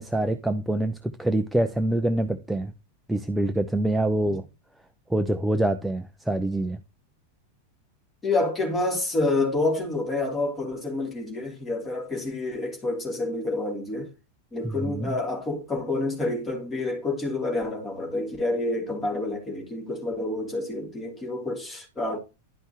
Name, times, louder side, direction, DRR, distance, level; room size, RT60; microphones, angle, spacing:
voice 1, 0.0-2.7 3.1-4.4 5.1-6.8 14.6-15.2, right 1 dB, 5° right, 0.7 m, -25 dB
voice 2, 8.2-14.1 14.5-22.2, left 2 dB, 20° left, 3.1 m, -28 dB
11.5 x 5.6 x 3.0 m
figure-of-eight pair, 90°, 0 cm